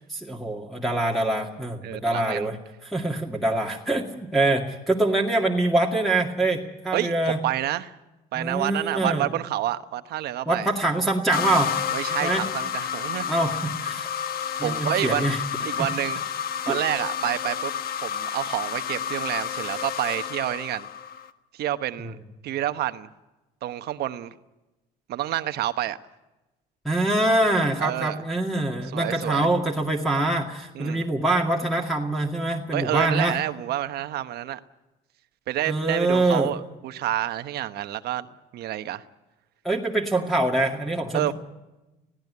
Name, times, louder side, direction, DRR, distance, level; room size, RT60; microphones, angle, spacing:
voice 1, 0.1-2.6 2.8-7.4 8.4-9.3 10.5-11.7 12.2-12.4 13.3-14.1 14.6-15.4 16.7-16.8 26.8-33.4 35.7-36.5 39.6-41.3, right 2 dB, ahead, 2.2 m, -24 dB
voice 2, 1.8-2.5 6.9-7.9 8.3-10.7 11.9-13.3 14.6-15.3 15.7-16.2 16.7-17.7 18.0-20.9 21.5-22.2 22.4-23.1 23.6-24.3 25.1-26.0 27.8-28.2 28.9-29.5 30.7-31.0 32.7-34.6 35.5-38.3 38.5-39.0 41.1-41.3, right 13 dB, 70° right, 1.1 m, -28 dB
sound 1, 11.3-21.3, left 9 dB, 60° left, 1.4 m, -30 dB
19.0 x 16.5 x 9.6 m
cardioid pair, 110°, 17 cm